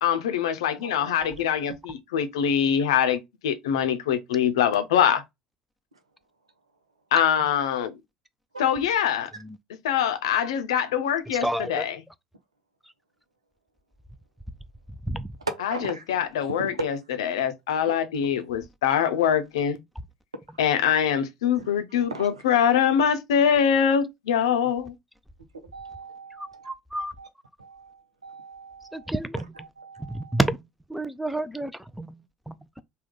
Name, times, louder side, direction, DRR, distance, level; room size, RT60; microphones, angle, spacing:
voice 1, 0.0-5.2 7.1-8.0 8.6-9.3 9.8-12.0 15.6-19.8 20.6-24.9, left 8 dB, 65° left, 0.6 m, -24 dB
voice 2, 0.7-1.4 8.5-8.7 15.4-16.9 21.5-21.7 22.1-22.4 25.7-26.7 27.2-27.3 27.6-29.1 29.6-30.4, right 2 dB, 80° right, 0.6 m, -38 dB
voice 3, 11.3-11.9 15.0-15.3 26.4-27.1 28.9-29.5 30.0-30.6 30.9-32.8, right 1 dB, ahead, 0.4 m, -30 dB
3.6 x 2.2 x 3.7 m
figure-of-eight pair, 65°, 3 cm